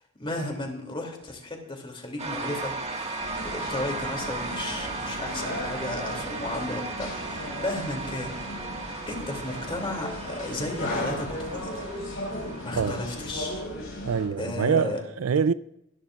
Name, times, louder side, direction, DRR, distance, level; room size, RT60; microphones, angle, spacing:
voice 1, 0.2-3.2 3.4-8.4 9.1-11.7 12.6-13.6 14.4-15.0, left 1 dB, 25° left, 2.7 m, -34 dB
sound 1, 2.2-13.6, right 3 dB, 30° right, 1.7 m, -36 dB
sound 2, 3.2-14.3, left 1 dB, 80° left, 6.0 m, -36 dB
voice 2, 14.0-15.5, right 6 dB, 90° right, 0.5 m, -25 dB
23.5 x 13.0 x 2.4 m
head